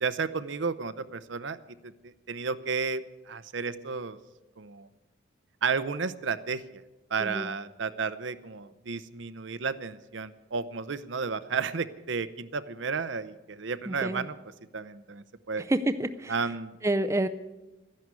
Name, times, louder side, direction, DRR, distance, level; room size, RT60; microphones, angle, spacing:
voice 1, 0.0-4.2 4.6-4.9 5.6-6.8 7.1-14.3 14.7-15.6 16.3-16.8, right 5 dB, 70° right, 13 dB, 0.7 m, -32 dB
voice 2, 7.2-7.5 13.9-14.3 15.6-16.5 16.8-17.3, right 1 dB, 15° right, 10 dB, 0.4 m, -29 dB
13.0 x 10.5 x 9.6 m, 1.1 s
head